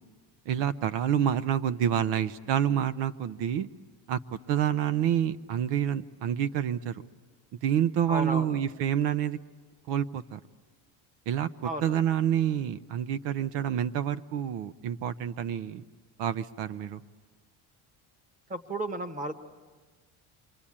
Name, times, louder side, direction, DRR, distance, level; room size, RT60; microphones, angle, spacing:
voice 1, 0.5-3.7 4.1-4.2 4.5-7.0 7.6-9.4 9.9-10.4 11.3-15.8 16.2-17.0, right 9 dB, 75° right, 13 dB, 0.8 m, -28 dB
voice 2, 8.1-8.5 11.6-12.0 18.5-19.3, right 1 dB, 15° right, 9 dB, 1.2 m, -33 dB
28.5 x 23.5 x 8.7 m, 1.5 s
cardioid pair, 155°, 44 cm